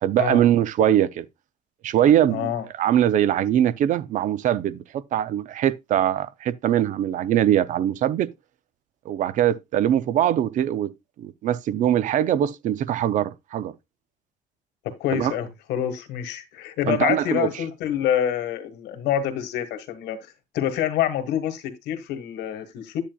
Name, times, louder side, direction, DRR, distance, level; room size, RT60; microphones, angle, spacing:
voice 1, 0.0-1.3 1.8-2.5 2.8-8.3 9.1-13.7 15.1-15.3 16.9-17.5, right 11 dB, 50° right, 0.6 m, -22 dB
voice 2, 2.3-2.6 14.8-20.2 20.5-23.0, left 10 dB, 75° left, 1.6 m, -26 dB
10.0 x 8.6 x 2.3 m
cardioid pair, 160°, 17 cm